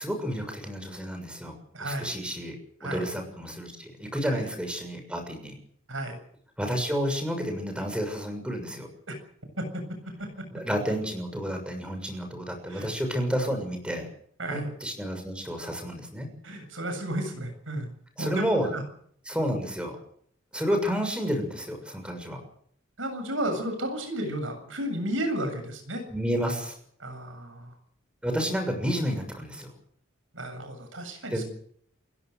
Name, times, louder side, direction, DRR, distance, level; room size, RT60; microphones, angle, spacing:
voice 1, 0.0-1.5 1.8-2.6 2.8-5.5 6.6-8.9 10.5-14.1 14.5-16.3 18.2-18.8 19.3-20.0 20.5-22.4 26.1-26.8 28.2-29.7 31.3-31.4, equal, 5° right, 4 dB, 6.6 m, -30 dB
voice 2, 1.7-2.1 2.8-3.0 4.2-4.4 5.9-6.2 9.1-9.2 9.6-10.5 12.7-12.9 14.4-14.7 16.4-18.5 18.7-18.8 23.0-26.0 27.0-27.7 30.3-31.4, right 1 dB, 75° right, 6 dB, 7.6 m, -33 dB
29.0 x 16.5 x 6.7 m, 0.63 s
head